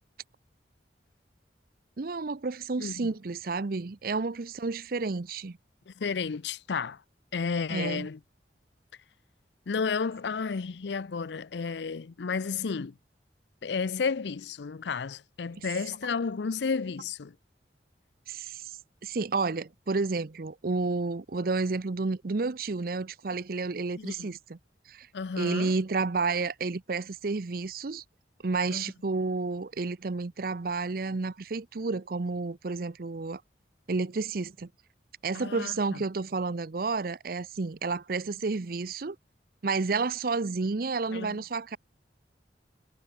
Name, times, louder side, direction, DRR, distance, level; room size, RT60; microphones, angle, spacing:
voice 1, 2.0-5.6 7.7-8.1 18.3-18.7 19.0-24.6 24.9-25.1 25.4-28.0 28.4-33.4 33.9-34.7 35.2-39.2 39.6-41.8, right 3 dB, 55° right, 0.6 m, -31 dB
voice 2, 2.8-3.1 5.9-7.0 7.3-8.2 9.7-12.9 13.6-17.3 24.0-24.3 25.1-25.7 28.7-28.9 35.3-36.0 41.1-41.4, left 5 dB, 75° left, 0.5 m, -32 dB
head